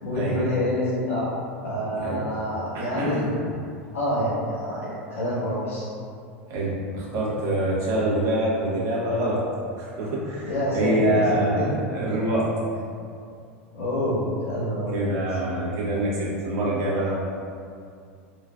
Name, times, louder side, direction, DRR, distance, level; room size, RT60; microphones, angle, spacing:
voice 1, 0.0-1.3 1.6-3.3 3.9-5.9 10.4-11.7 13.7-15.4, left 1 dB, 85° left, -10 dB, 1.2 m, -27 dB
voice 2, 2.7-3.2 6.5-9.4 9.8-12.5 14.9-17.2, right 1 dB, 45° right, -6 dB, 1.1 m, -25 dB
3.7 x 3.0 x 2.3 m, 2.4 s
hypercardioid pair, 90°, 7 cm